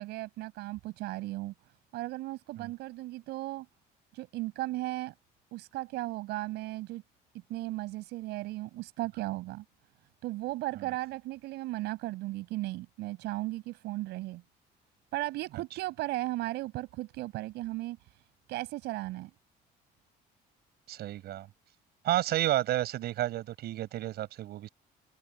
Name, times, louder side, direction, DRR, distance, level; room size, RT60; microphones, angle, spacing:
voice 1, 0.0-1.5 1.9-3.7 4.1-5.1 5.5-7.0 7.5-9.6 10.2-14.4 15.1-18.0 18.5-19.3, right 18 dB, 85° right, 5.9 m, -36 dB
voice 2, 20.9-21.5 22.0-24.7, right 14 dB, 70° right, 7.6 m, -31 dB
cardioid pair, 110°, 17 cm